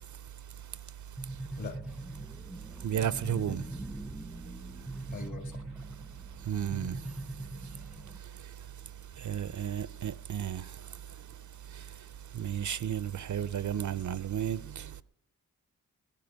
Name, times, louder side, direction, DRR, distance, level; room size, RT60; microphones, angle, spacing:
sound 1, 1.2-8.2, right 1 dB, 5° right, 0.5 m, -42 dB
voice 1, 2.8-3.6 6.5-7.0 9.2-10.6 12.3-14.9, right 9 dB, 55° right, 0.5 m, -32 dB
voice 2, 5.1-5.6, left 4 dB, 50° left, 1.8 m, -42 dB
14.0 x 12.5 x 6.2 m
cardioid pair, 70°, 37 cm